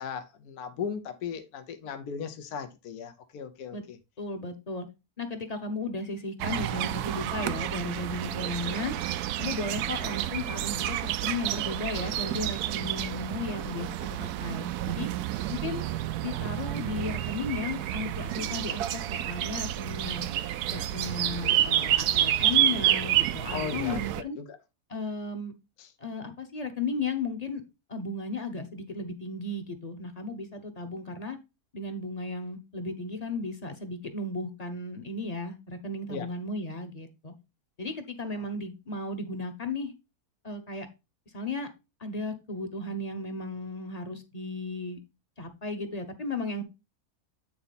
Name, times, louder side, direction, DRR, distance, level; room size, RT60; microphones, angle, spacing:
voice 1, 0.0-3.8 23.5-24.5 25.8-25.9 36.1-36.3, left 7 dB, 75° left, 1.3 m, -37 dB
voice 2, 4.2-4.9 5.2-9.0 9.4-15.1 15.5-15.8 16.2-20.3 20.7-24.4 24.9-25.5 26.0-27.6 27.9-31.4 31.7-37.3 37.8-39.9 40.4-40.9 41.3-41.7 42.0-45.0 45.4-46.6, left 2 dB, 30° left, 0.9 m, -35 dB
sound 1, 6.4-24.2, right 12 dB, 85° right, 1.1 m, -29 dB
8.9 x 4.1 x 4.1 m
omnidirectional pair, 1.6 m